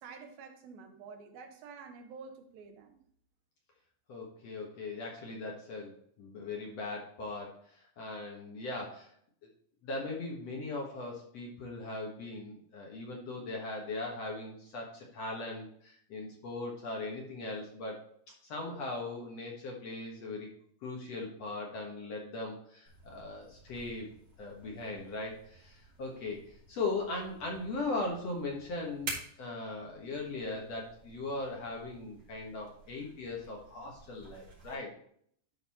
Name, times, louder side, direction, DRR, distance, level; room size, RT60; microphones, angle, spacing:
voice 1, 0.0-3.0, right 5 dB, 80° right, 5 dB, 3.0 m, -49 dB
voice 2, 4.1-9.2 9.8-18.1 18.4-20.5 20.8-24.1 24.4-34.9, left 2 dB, 55° left, -1 dB, 2.0 m, -39 dB
sound 1, 22.9-34.7, right 3 dB, 35° right, 2.7 m, -50 dB
12.0 x 4.1 x 4.2 m, 0.63 s
omnidirectional pair, 4.2 m